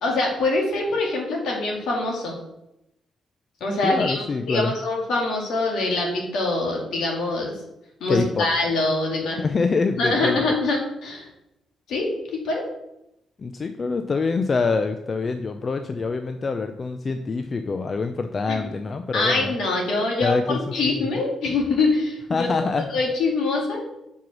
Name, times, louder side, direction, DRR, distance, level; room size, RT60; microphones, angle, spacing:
voice 1, 0.0-2.4 3.6-7.5 8.0-9.4 10.0-11.3 11.9-12.6 18.5-18.7 19.1-22.5 22.9-23.8, left 2 dB, 75° left, 0 dB, 2.1 m, -24 dB
voice 2, 3.8-4.7 8.1-8.5 9.4-10.4 13.4-19.6 20.2-20.8 22.3-22.9, left 4 dB, 45° left, 7 dB, 0.5 m, -25 dB
5.4 x 4.7 x 6.1 m, 0.85 s
supercardioid pair, 55°, 0 cm